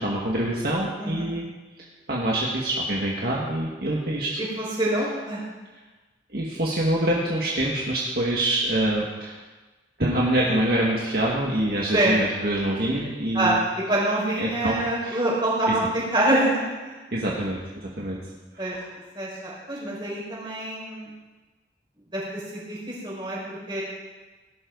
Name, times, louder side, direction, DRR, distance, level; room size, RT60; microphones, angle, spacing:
voice 1, 0.0-1.4 2.1-4.3 6.3-9.4 10.0-13.6 14.4-14.8 15.0-15.2 15.7-15.8 17.1-18.2 18.5-18.8, right 1 dB, 55° right, -4 dB, 1.9 m, -25 dB
voice 2, 4.4-5.4 11.9-12.2 13.3-13.6 13.9-15.8 16.1-17.0 18.6-18.7 19.1-21.1 22.1-23.8, right 1 dB, 25° right, -6 dB, 5.6 m, -26 dB
19.0 x 11.5 x 4.1 m, 1.2 s
head